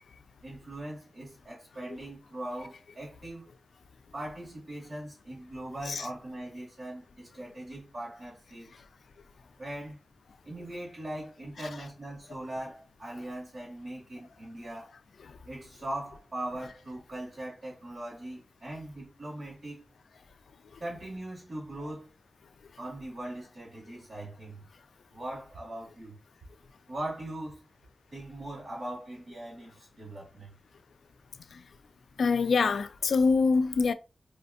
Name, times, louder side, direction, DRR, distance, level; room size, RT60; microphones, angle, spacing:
voice 1, 0.4-3.5 4.1-8.8 9.6-10.0 10.4-15.0 15.5-19.8 20.8-22.1 22.8-24.6 25.1-26.2 26.9-27.6 28.1-30.5, right 1 dB, 55° right, 2.2 m, -40 dB
voice 2, 32.2-33.9, left 4 dB, 85° left, 0.3 m, -25 dB
4.8 x 2.5 x 2.5 m
wide cardioid pair, 105°, 0 cm